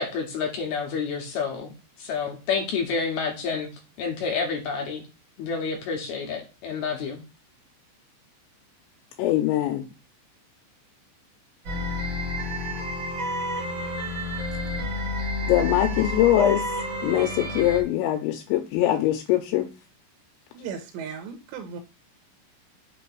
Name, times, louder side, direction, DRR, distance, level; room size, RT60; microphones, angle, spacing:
voice 1, 0.0-1.7 2.0-3.7 4.0-5.1 5.4-7.2, left 5 dB, 70° left, 2.8 m, -29 dB
voice 2, 9.2-9.9 15.4-16.6 17.0-19.7, left 12 dB, 85° left, 3.0 m, -22 dB
sound 1, 11.6-17.8, left 1 dB, 55° right, 1.3 m, -30 dB
voice 3, 20.5-21.8, right 6 dB, 85° right, 3.0 m, -36 dB
7.2 x 3.1 x 5.9 m
omnidirectional pair, 5.2 m